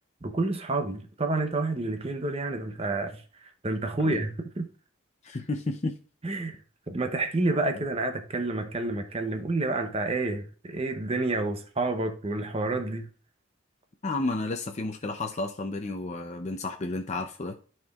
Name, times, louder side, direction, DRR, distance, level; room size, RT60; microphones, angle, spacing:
voice 1, 0.2-4.7 6.2-6.6 6.9-13.1, right 2 dB, 30° right, 0.7 m, -29 dB
voice 2, 5.2-5.9 14.0-17.6, left 2 dB, 35° left, 0.5 m, -32 dB
12.5 x 4.4 x 2.4 m
head